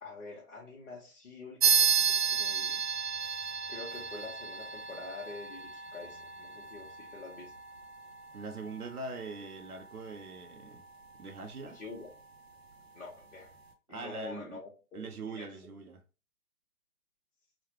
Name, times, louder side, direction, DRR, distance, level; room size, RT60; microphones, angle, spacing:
voice 1, 0.0-2.8 3.7-7.5 11.7-12.1 12.9-13.5 13.9-15.7, left 3 dB, 60° left, 1.2 m, -46 dB
sound 1, 1.6-11.6, right 6 dB, 45° right, 0.6 m, -33 dB
voice 2, 8.3-10.8 11.1-11.8 13.9-14.6 14.9-16.0, right 3 dB, 80° right, 0.7 m, -42 dB
3.9 x 2.2 x 3.0 m
figure-of-eight pair, 135°, 44 cm